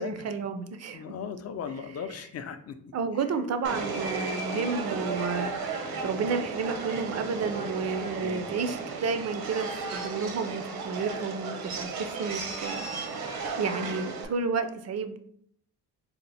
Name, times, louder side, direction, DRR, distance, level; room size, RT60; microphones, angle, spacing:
voice 1, 0.0-1.0 2.9-5.8 6.0-13.1 13.6-15.2, right 4 dB, 45° right, 9 dB, 0.5 m, -31 dB
voice 2, 0.9-2.8 8.2-8.5, left 7 dB, 40° left, 10 dB, 0.4 m, -37 dB
Subway metro underground, 3.6-14.2, right 4 dB, 70° right, 0.8 m, -34 dB
4.1 x 2.0 x 4.0 m, 0.65 s
cardioid pair, 100°, 38 cm